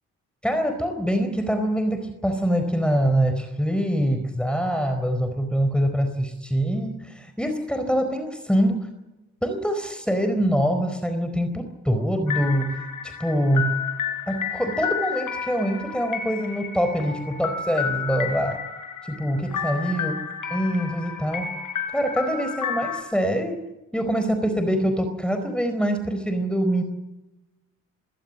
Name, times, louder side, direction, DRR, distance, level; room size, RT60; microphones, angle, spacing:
voice 1, 0.4-8.8 9.4-12.8 13.0-13.7 14.3-18.6 19.1-20.1 20.5-21.5 21.9-23.6 23.9-26.8, equal, 5° left, 7 dB, 4.4 m, -24 dB
sound 1, 12.3-23.0, left 7 dB, 65° left, 4.7 m, -31 dB
22.0 x 16.5 x 8.5 m, 0.99 s
hypercardioid pair, 45°, 35 cm